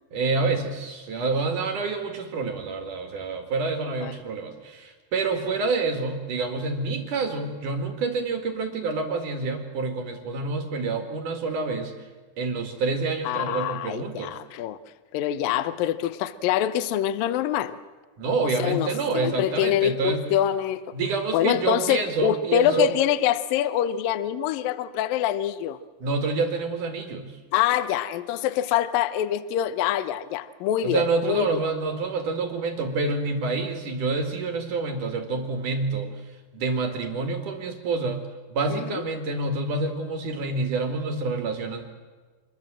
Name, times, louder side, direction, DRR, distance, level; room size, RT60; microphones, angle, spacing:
voice 1, 0.1-12.1 12.4-14.4 18.2-20.3 20.9-22.9 26.0-27.4 30.8-36.1 36.5-41.9, right 3 dB, 50° right, 5 dB, 3.0 m, -27 dB
voice 2, 13.3-14.8 15.1-17.8 18.6-18.9 19.1-20.8 21.3-25.8 27.5-31.6 38.7-39.0, left 11 dB, 80° left, 14 dB, 2.0 m, -25 dB
26.5 x 21.5 x 7.6 m, 1.4 s
omnidirectional pair, 5.4 m